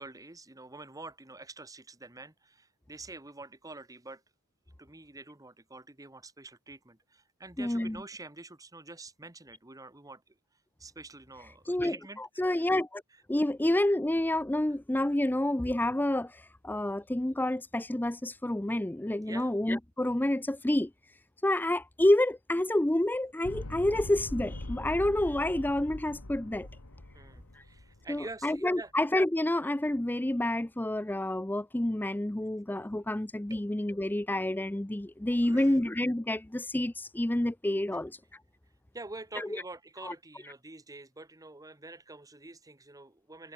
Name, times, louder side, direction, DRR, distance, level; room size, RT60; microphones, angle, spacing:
voice 1, 0.0-4.2 4.8-10.4 10.8-12.4 19.3-19.5 27.1-28.9 32.4-32.5 33.5-33.6 35.4-35.8 38.9-43.5, right 2 dB, 15° right, 1.4 m, -47 dB
voice 2, 7.6-8.0 11.7-13.0 13.3-26.7 27.5-27.6 28.1-38.2 39.4-39.6 40.0-40.1 40.4-40.5, left 1 dB, 10° left, 0.5 m, -29 dB
sound 1, 23.4-28.6, left 1 dB, 80° left, 2.1 m, -42 dB
head